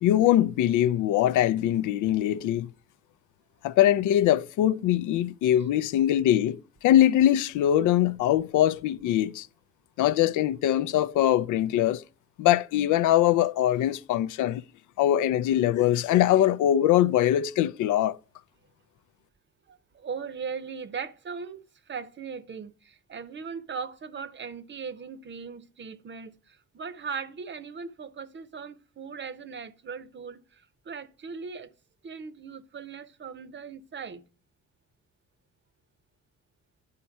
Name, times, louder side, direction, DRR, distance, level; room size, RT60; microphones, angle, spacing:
voice 1, 0.0-2.7 3.6-6.6 6.8-9.5 10.0-12.0 12.4-14.6 15.0-18.2, left 12 dB, 80° left, 0.5 m, -22 dB
voice 2, 19.7-31.7 32.0-34.2, right 5 dB, 40° right, 0.7 m, -39 dB
10.5 x 4.3 x 4.5 m
cardioid pair, 90°, 30 cm